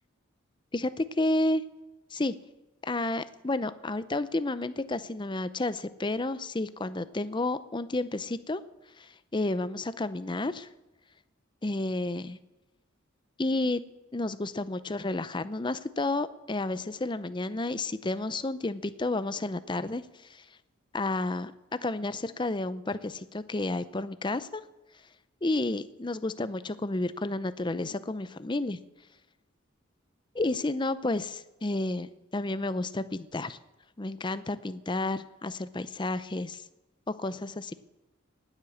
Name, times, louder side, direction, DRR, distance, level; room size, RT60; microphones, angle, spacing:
voice 1, 0.7-1.6 2.1-2.3 2.8-8.6 9.0-10.7 11.6-12.4 13.4-13.8 14.1-20.0 20.3-20.4 20.9-21.5 21.8-24.6 25.4-28.8 30.3-33.6 34.0-36.6 37.2-37.7, left 2 dB, 25° left, 14 dB, 0.6 m, -31 dB
19.0 x 8.2 x 7.1 m, 1.0 s
head